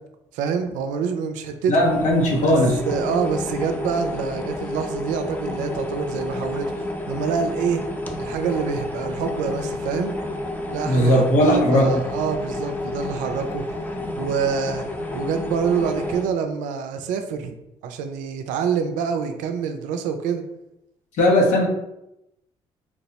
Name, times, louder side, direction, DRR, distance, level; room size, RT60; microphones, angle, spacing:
voice 1, 0.3-1.8 2.4-2.6 2.8-7.9 8.2-10.2 10.7-13.6 14.2-14.8 15.1-17.6 17.8-20.5, right 6 dB, 85° right, 7 dB, 0.4 m, -26 dB
voice 2, 1.7-2.8 10.9-11.9 21.2-21.7, equal, 75° left, 0 dB, 0.8 m, -17 dB
sound 1, 1.8-16.2, left 2 dB, 15° left, 0.6 m, -30 dB
4.5 x 2.0 x 2.8 m, 0.86 s
supercardioid pair, 60°, 13 cm